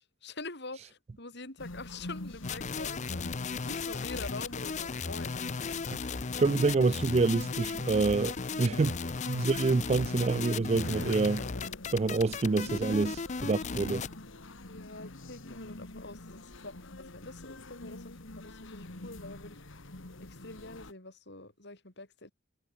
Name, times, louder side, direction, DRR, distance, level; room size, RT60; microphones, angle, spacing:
voice 1, 0.0-5.3 6.5-6.6 8.6-8.8 12.7-12.8 14.7-19.6 20.2-22.3, left 2 dB, 55° left, 6.2 m, -45 dB
sound 1, 1.6-20.9, left 2 dB, 75° left, 2.1 m, -46 dB
sound 2, 2.4-14.1, left 5 dB, 35° left, 0.6 m, -36 dB
voice 2, 6.4-8.9 9.3-11.5 11.9-13.1 13.4-14.0, right 3 dB, 30° right, 0.4 m, -27 dB
head